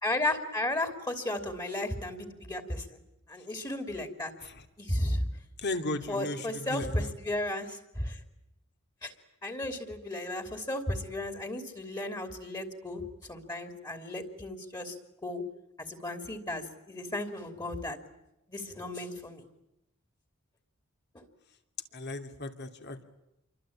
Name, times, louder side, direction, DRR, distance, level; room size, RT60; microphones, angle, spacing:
voice 1, 0.0-3.0 3.3-4.3 4.8-5.2 6.1-8.2 9.0-9.1 9.4-15.0 15.2-15.4 15.9-18.0 18.5-19.4 21.1-21.2, left 1 dB, 20° left, 7 dB, 3.0 m, -34 dB
voice 2, 5.6-7.1 21.9-23.0, left 2 dB, 55° left, 7 dB, 2.8 m, -36 dB
28.5 x 24.0 x 8.7 m, 0.89 s
head